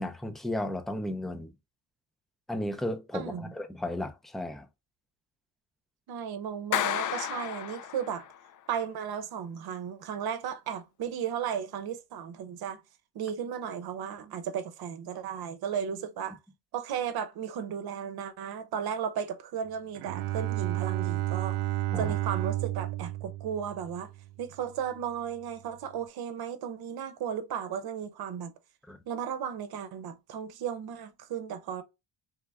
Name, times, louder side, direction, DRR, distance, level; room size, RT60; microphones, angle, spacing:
voice 1, 0.0-1.5 2.5-4.7 21.9-22.1 28.9-29.0, left 1 dB, ahead, 0.5 m, -34 dB
voice 2, 3.1-3.5 6.1-8.3 8.7-12.8 13.1-16.4 16.7-21.6 22.0-24.1 24.4-28.5 29.1-31.8, right 8 dB, 65° right, 0.9 m, -35 dB
Clapping, 6.7-8.4, left 11 dB, 50° left, 0.4 m, -32 dB
Bowed string instrument, 19.9-24.5, right 15 dB, 90° right, 0.5 m, -32 dB
3.4 x 3.4 x 3.5 m
cardioid pair, 120°, 40 cm